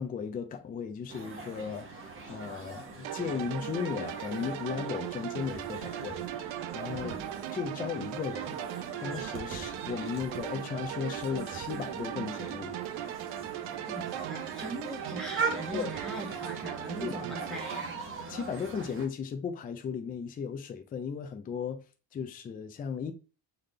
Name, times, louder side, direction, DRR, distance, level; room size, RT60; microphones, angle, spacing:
voice 1, 0.0-7.2 7.5-8.6 9.0-12.8 15.7-15.9 17.0-17.1 18.3-21.8 22.1-23.1, left 6 dB, 20° left, 0.3 m, -36 dB
sound 1, 1.1-19.1, right 4 dB, 25° right, 0.9 m, -41 dB
sound 2, 3.0-17.8, right 13 dB, 80° right, 0.6 m, -38 dB
voice 2, 13.9-18.0, right 1 dB, ahead, 1.2 m, -40 dB
3.9 x 3.4 x 4.0 m
cardioid pair, 175°, 47 cm